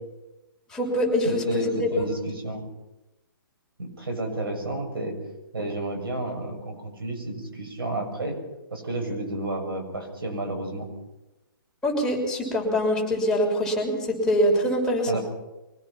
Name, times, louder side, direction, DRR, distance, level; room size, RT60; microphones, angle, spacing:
voice 1, 0.7-1.7 11.8-15.2, equal, 5° left, -2 dB, 6.0 m, -24 dB
voice 2, 1.2-2.7 3.8-5.2 5.5-8.4 8.7-10.9 15.1-15.2, right 2 dB, 85° right, 4 dB, 7.0 m, -31 dB
24.5 x 18.5 x 5.9 m, 1.0 s
hypercardioid pair, 140°, 12 cm